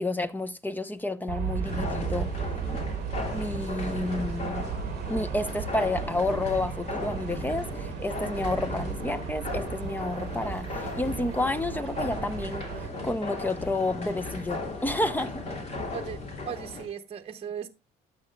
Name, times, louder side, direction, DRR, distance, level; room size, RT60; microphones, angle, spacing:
voice 1, 0.0-2.3 3.3-4.7 5.1-12.7 13.0-15.4, left 2 dB, 10° left, 0.8 m, -30 dB
Aircraft, 1.3-12.9, right 8 dB, 60° right, 0.9 m, -35 dB
sound 1, 1.6-16.9, left 2 dB, 40° left, 3.0 m, -36 dB
voice 2, 15.9-16.2 16.5-17.7, right 8 dB, 35° right, 1.0 m, -37 dB
13.0 x 8.5 x 2.3 m
cardioid pair, 110°, 17 cm